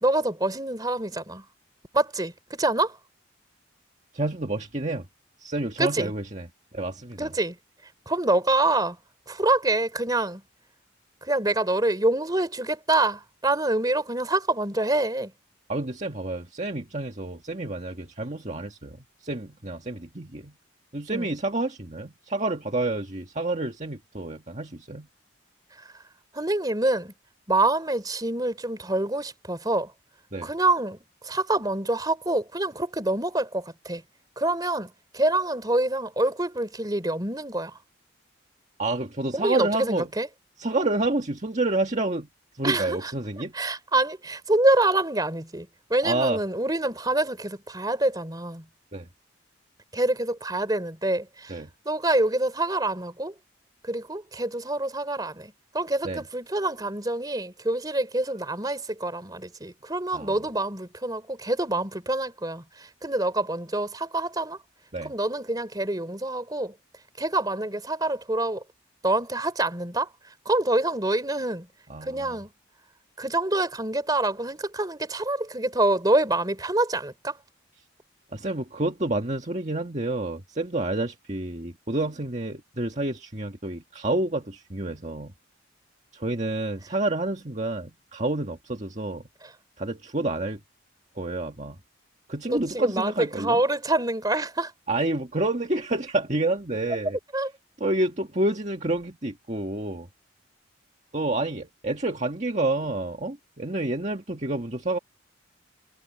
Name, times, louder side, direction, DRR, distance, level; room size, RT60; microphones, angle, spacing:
voice 1, 0.0-1.4 1.9-3.0 5.8-6.1 7.2-7.6 8.1-9.0 9.3-10.4 11.2-15.3 21.1-21.3 26.3-27.1 27.5-29.9 30.4-31.0 31.2-34.0 34.4-37.7 39.3-40.3 42.6-43.1 43.5-48.7 49.9-51.5 51.9-53.3 53.8-64.6 65.0-66.7 67.2-68.6 69.0-70.1 70.5-71.7 72.0-72.5 73.2-77.4 92.5-94.7 97.3-97.5, right 2 dB, 20° right, 3.6 m, -26 dB
voice 2, 4.1-5.1 5.4-7.3 15.7-20.5 20.9-25.1 30.3-30.5 38.8-40.1 40.6-42.3 42.5-43.5 46.0-46.4 48.9-49.1 51.5-51.7 56.0-56.2 60.1-60.4 64.9-65.1 71.9-72.4 78.3-85.3 86.1-89.2 89.8-90.6 91.2-91.8 92.3-93.6 94.9-97.2 97.8-100.1 101.1-105.0, right 2 dB, 35° right, 1.8 m, -29 dB
head